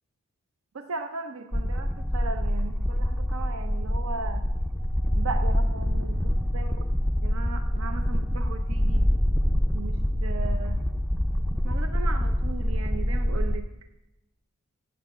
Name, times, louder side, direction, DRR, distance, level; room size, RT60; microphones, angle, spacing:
voice 1, 0.7-4.4 5.1-6.8 7.2-9.1 9.7-10.8 11.6-13.6, right 4 dB, 65° right, 7 dB, 0.6 m, -37 dB
sound 1, 1.5-13.6, equal, ahead, 0.4 m, -25 dB
8.1 x 7.4 x 7.9 m, 0.97 s
head